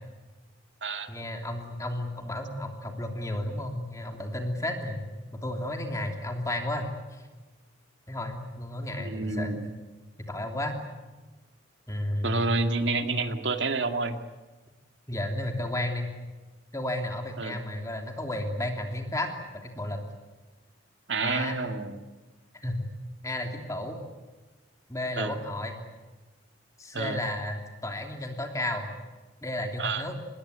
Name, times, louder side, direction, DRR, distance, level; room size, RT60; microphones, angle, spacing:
voice 1, 1.1-5.1 5.4-7.2 8.1-9.6 10.3-10.8 11.9-12.4 15.1-16.1 16.7-19.3 19.6-20.0 21.2-21.6 22.6-22.9 23.2-24.0 24.9-25.8 26.8-28.9 29.4-30.1, left 1 dB, 15° left, 3 dB, 3.0 m, -32 dB
voice 2, 9.0-9.7 12.2-14.2 17.4-17.6 21.1-22.0 25.2-25.4 26.9-27.2 29.8-30.1, right 3 dB, 70° right, 6 dB, 2.2 m, -29 dB
26.5 x 20.5 x 9.7 m, 1.2 s
head